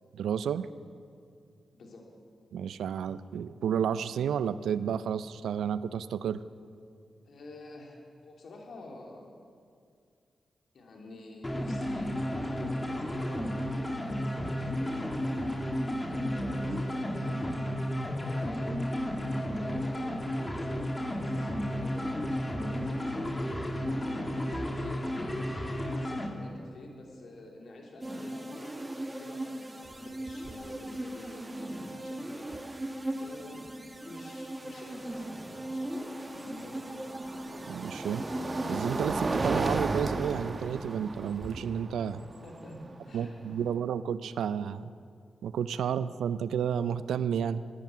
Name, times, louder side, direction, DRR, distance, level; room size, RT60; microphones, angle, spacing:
voice 1, 0.1-0.7 2.5-6.4 37.7-38.2 38.7-42.2 43.1-44.9 45.4-47.6, right 8 dB, 85° right, 15 dB, 0.4 m, -31 dB
voice 2, 1.7-2.0 7.3-7.9 8.2-9.3 10.7-12.2 12.5-15.5 15.8-17.5 18.2-25.6 25.9-29.6 30.0-32.6 33.2-36.0 36.3-37.1 42.4-42.8 43.0-43.4, left 2 dB, 70° left, 0 dB, 2.9 m, -48 dB
sound 1, 11.4-26.3, equal, 25° left, 2.1 m, -32 dB
sound 2, 28.0-39.8, right 1 dB, 20° right, 1.3 m, -39 dB
sound 3, 29.9-30.0 30.3-30.7 32.5-32.6 35.6-43.7, right 3 dB, 45° right, 1.1 m, -35 dB
13.5 x 11.0 x 8.3 m, 2.3 s
supercardioid pair, 45°, 0 cm